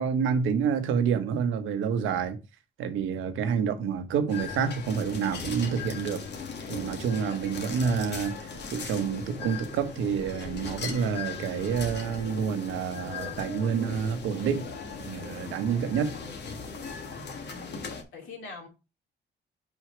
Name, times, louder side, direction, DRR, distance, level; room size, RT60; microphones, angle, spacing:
voice 1, 0.0-2.4 2.8-6.2 6.7-14.6 15.1-16.1, right 6 dB, 85° right, 1.0 m, -28 dB
sound 1, 4.3-18.0, left 5 dB, 60° left, 1.4 m, -38 dB
voice 2, 17.5-18.7, left 4 dB, 75° left, 2.4 m, -45 dB
5.5 x 4.6 x 4.8 m
cardioid pair, 75°, 20 cm